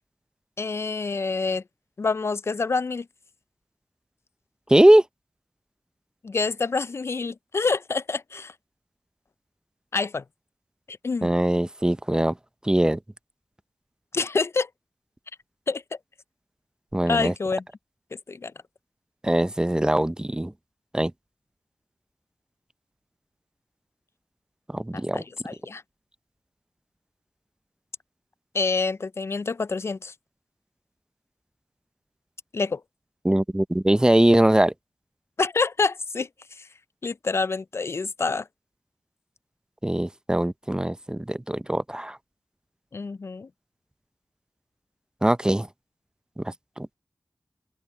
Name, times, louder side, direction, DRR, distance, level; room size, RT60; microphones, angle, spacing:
voice 1, 0.6-1.6 2.0-3.1 6.2-8.5 9.9-10.2 10.9-11.3 14.1-14.7 15.7-15.8 17.1-17.6 18.3-18.5 24.9-25.8 28.5-30.1 32.5-32.8 35.4-36.3 36.6-36.7 37.0-38.4 42.9-43.5, left 4 dB, 55° left, 0.3 m, -27 dB
voice 2, 4.7-5.0 11.2-12.3 12.6-13.0 16.9-17.3 19.2-20.5 20.9-21.1 24.7-25.2 33.2-34.7 39.8-42.2 45.2-45.7 46.4-46.9, right 1 dB, 15° right, 0.5 m, -21 dB
open air
cardioid pair, 50°, 5 cm